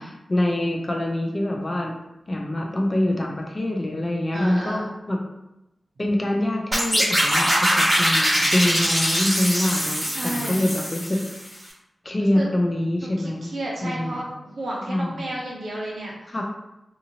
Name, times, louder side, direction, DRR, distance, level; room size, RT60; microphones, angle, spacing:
voice 1, 0.0-1.9 2.3-5.2 6.0-11.2 12.0-13.5 13.8-14.3 14.9-15.3 16.3-16.4, left 1 dB, 25° left, 0 dB, 0.4 m, -25 dB
voice 2, 4.3-4.9 10.1-10.7 12.2-12.5 13.0-14.2 14.6-16.1, right 1 dB, 65° right, -4 dB, 0.8 m, -32 dB
sound 1, 6.7-11.5, equal, 15° right, 1.5 m, -22 dB
2.7 x 2.7 x 2.7 m, 0.91 s
wide cardioid pair, 145°, 0 cm